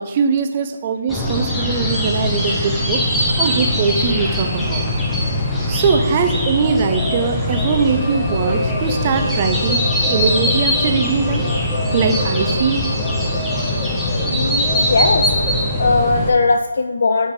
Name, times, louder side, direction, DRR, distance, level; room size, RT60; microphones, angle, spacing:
voice 1, 0.0-3.0 3.4-4.9 5.7-11.4 11.9-12.8, right 5 dB, 25° right, 6 dB, 0.5 m, -21 dB
sound 1, 1.1-16.3, left 1 dB, 5° left, 0.7 m, -21 dB
sound 2, 4.4-7.0 7.9-16.2, equal, 45° right, 1.4 m, -37 dB
voice 2, 14.3-15.3 15.8-17.3, left 3 dB, 55° left, 6 dB, 0.3 m, -18 dB
8.5 x 3.4 x 4.1 m, 1.2 s
figure-of-eight pair, 160°, 0 cm